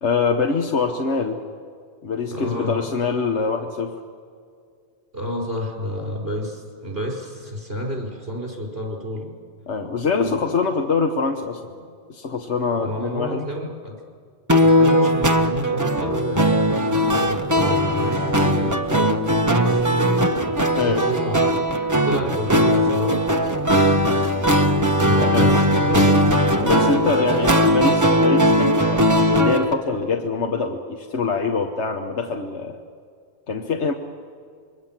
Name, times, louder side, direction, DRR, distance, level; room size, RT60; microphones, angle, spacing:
voice 1, 0.0-1.4 2.0-4.0 9.7-11.6 12.1-13.5 20.7-21.1 25.3-25.5 26.6-32.8 33.5-33.9, left 4 dB, 80° left, 3 dB, 1.5 m, -24 dB
voice 2, 2.3-2.9 5.1-9.3 10.2-10.5 12.8-14.0 14.6-20.3 20.8-21.6 22.0-23.3 25.0-26.1, left 1 dB, 60° right, 0 dB, 5.3 m, -30 dB
sound 1, 14.5-29.7, equal, 15° right, 1.2 m, -19 dB
27.0 x 22.0 x 7.4 m, 2.2 s
omnidirectional pair, 1.1 m